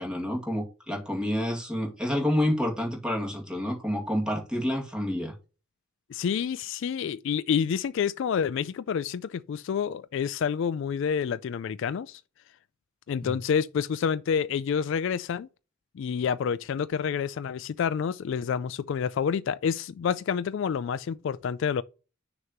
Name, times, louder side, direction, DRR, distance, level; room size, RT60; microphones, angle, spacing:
voice 1, 0.0-5.3 13.2-13.3, left 1 dB, 5° right, 2.0 m, -28 dB
voice 2, 6.1-12.2 13.1-15.5 16.0-21.8, left 7 dB, 65° left, 0.3 m, -28 dB
6.5 x 3.0 x 5.0 m
head